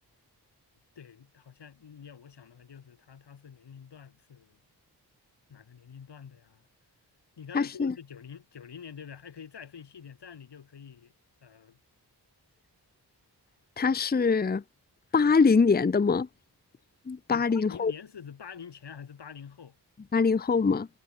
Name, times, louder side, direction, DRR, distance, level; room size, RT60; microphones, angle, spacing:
voice 1, 1.0-4.6 5.5-6.6 7.4-11.1 11.4-11.8 17.3-19.8, left 7 dB, 85° left, 3.9 m, -46 dB
voice 2, 7.5-7.9 13.8-14.6 15.1-16.3 17.1-17.9 20.1-20.9, left 5 dB, 25° left, 0.6 m, -23 dB
wide cardioid pair, 80°, 40 cm